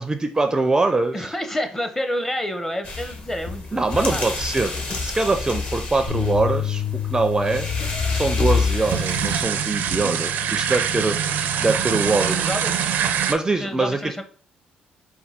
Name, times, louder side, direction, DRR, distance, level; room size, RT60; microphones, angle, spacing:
voice 1, 0.0-1.3 3.7-4.7 5.0-6.8 7.1-7.7 8.1-11.2 11.6-12.4 13.3-14.0, right 3 dB, 20° right, 7 dB, 0.4 m, -23 dB
voice 2, 1.1-4.3 12.4-13.0 13.6-14.2, equal, 15° left, 7 dB, 0.7 m, -29 dB
sound 1, 2.8-9.4, left 4 dB, 45° left, 1.1 m, -28 dB
sound 2, 6.1-12.3, left 10 dB, 90° left, 1.7 m, -31 dB
sound 3, 8.6-13.3, right 8 dB, 75° right, 0.4 m, -24 dB
4.4 x 2.2 x 4.2 m, 0.43 s
cardioid pair, 85°, 3 cm